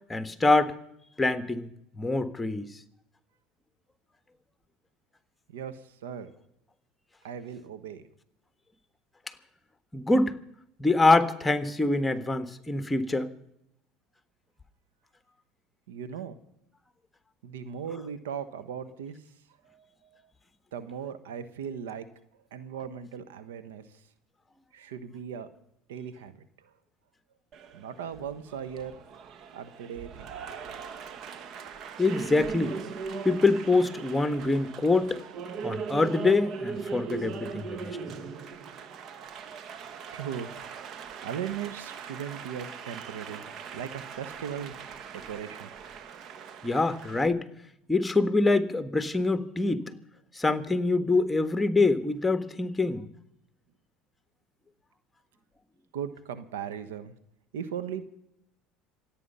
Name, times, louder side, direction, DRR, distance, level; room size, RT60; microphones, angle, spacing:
voice 1, 0.1-0.8 1.2-1.7 2.0-2.7 9.9-10.4 10.8-13.3 32.0-32.7 33.2-35.2 35.6-38.0 46.6-47.4 47.9-49.8 50.3-53.1, left 3 dB, 10° left, 1.5 m, -25 dB
voice 2, 5.5-6.3 7.2-8.0 15.9-16.4 17.4-19.2 19.6-20.2 20.7-22.1 22.5-24.0 24.7-25.5 25.9-26.7 27.7-29.0 29.5-30.3 39.1-39.2 40.1-40.9 41.2-43.5 43.7-44.9 45.3-45.7 55.9-57.1 57.5-58.3, right 8 dB, 85° right, 1.3 m, -38 dB
Applause, 27.5-47.3, right 6 dB, 50° right, 1.3 m, -40 dB
26.5 x 9.1 x 5.6 m
hypercardioid pair, 80°, 0 cm